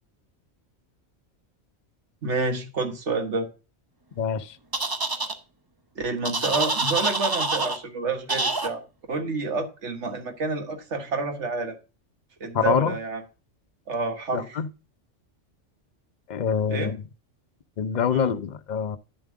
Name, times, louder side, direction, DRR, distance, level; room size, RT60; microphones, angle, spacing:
voice 1, 2.2-3.5 6.0-8.8 9.1-11.8 12.4-13.2 13.9-14.6 16.7-17.0 18.1-18.4, right 3 dB, 70° right, 1.7 m, -29 dB
voice 2, 4.2-4.5 12.5-13.0 14.3-14.7 16.3-17.0 17.8-19.0, left 7 dB, 45° left, 0.6 m, -25 dB
sound 1, 4.7-5.3 6.2-7.8 8.3-8.7, right 3 dB, 25° right, 0.6 m, -26 dB
9.9 x 7.2 x 3.6 m
omnidirectional pair, 1.2 m